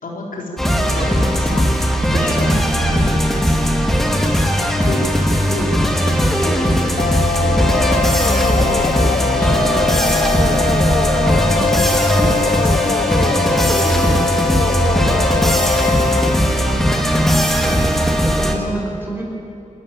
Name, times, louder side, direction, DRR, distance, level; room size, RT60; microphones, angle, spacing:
voice 1, 0.0-4.0 4.8-6.9 7.4-7.8 8.3-15.1, left 1 dB, 85° left, -1 dB, 3.9 m, -31 dB
sound 1, 0.6-18.5, equal, ahead, 2.5 m, -17 dB
sound 2, 7.0-16.3, left 5 dB, 55° left, 0.8 m, -22 dB
voice 2, 17.3-19.2, right 1 dB, 15° right, -1 dB, 5.7 m, -28 dB
28.5 x 13.0 x 8.8 m, 2.9 s
wide cardioid pair, 110°, 14 cm